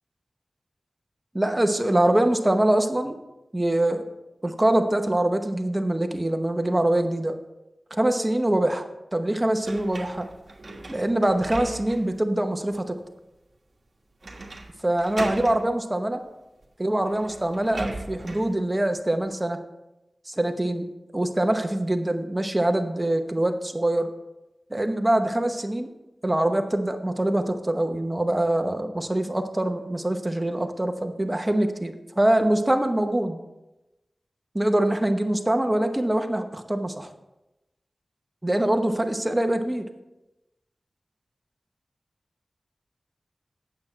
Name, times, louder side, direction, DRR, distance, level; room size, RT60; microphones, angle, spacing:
voice 1, 1.3-3.2 3.5-4.0 4.4-7.4 7.9-10.3 10.9-13.0 14.8-16.2 16.8-19.6 20.3-20.9 21.1-24.1 24.7-25.9 26.2-33.4 34.5-37.1 38.4-39.9, right 1 dB, 20° right, 6 dB, 0.9 m, -24 dB
sound 1, 9.6-12.2 12.7-12.8 14.2-14.7 15.0-15.6 16.6-16.7 17.0-18.5, right 2 dB, 60° right, 1.4 m, -38 dB
8.7 x 7.3 x 4.4 m, 0.98 s
wide cardioid pair, 60°, 0 cm